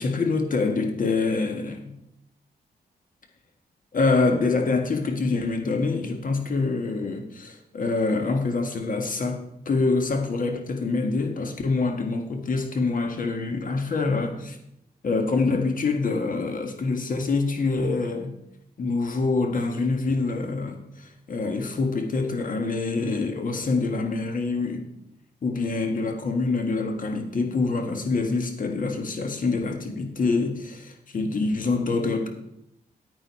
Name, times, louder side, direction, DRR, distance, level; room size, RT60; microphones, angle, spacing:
voice 1, 0.0-1.9 3.9-14.6 15.0-18.4 18.8-24.8 25.4-32.3, left 3 dB, 55° left, 1.7 m, -25 dB
9.4 x 8.9 x 4.3 m
cardioid pair, 70°, 17 cm